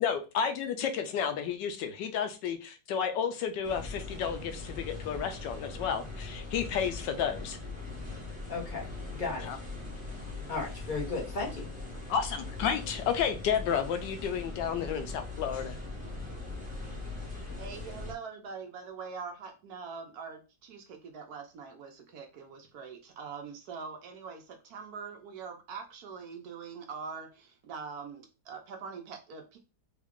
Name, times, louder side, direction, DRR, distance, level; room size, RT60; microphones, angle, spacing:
voice 1, 0.0-7.6 9.4-9.6 12.1-15.7, left 7 dB, 90° left, 9 dB, 1.3 m, -31 dB
sound 1, 3.6-18.1, left 3 dB, 5° right, 0.6 m, -41 dB
voice 2, 8.5-9.6 10.5-11.6, left 3 dB, 35° left, -2 dB, 0.9 m, -35 dB
voice 3, 17.3-29.6, right 5 dB, 70° right, 4 dB, 1.1 m, -43 dB
3.6 x 2.3 x 3.5 m, 0.30 s
omnidirectional pair, 1.9 m